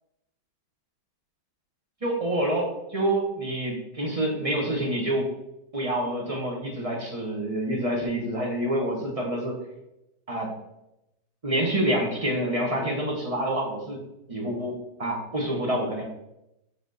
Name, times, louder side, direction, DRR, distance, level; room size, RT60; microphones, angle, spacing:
voice 1, 2.0-5.3 5.7-9.6 10.3-10.5 11.4-14.0 14.3-16.0, right 1 dB, 30° right, -1 dB, 0.6 m, -27 dB
5.5 x 5.0 x 3.9 m, 0.87 s
omnidirectional pair, 2.2 m